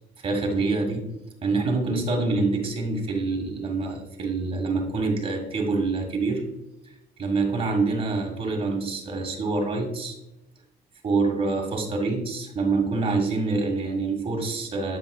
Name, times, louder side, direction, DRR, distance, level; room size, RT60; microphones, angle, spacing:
voice 1, 0.2-1.1 1.4-6.5 7.2-10.1 11.0-15.0, right 3 dB, 35° right, 1 dB, 1.8 m, -26 dB
8.6 x 5.3 x 2.4 m, 0.88 s
cardioid pair, 110°, 17 cm